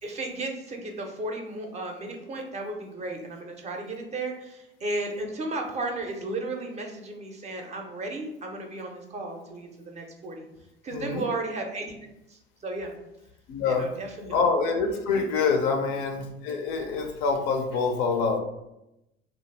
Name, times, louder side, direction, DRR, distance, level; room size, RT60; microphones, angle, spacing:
voice 1, 0.0-10.5 10.8-11.9 12.3-12.9 13.7-14.4 14.9-15.2, right 2 dB, 25° right, 2 dB, 0.5 m, -34 dB
voice 2, 10.9-11.3 13.5-13.9 14.3-18.4, left 4 dB, 50° left, 5 dB, 0.5 m, -26 dB
2.8 x 2.2 x 3.2 m, 0.90 s
figure-of-eight pair, 65°, 29 cm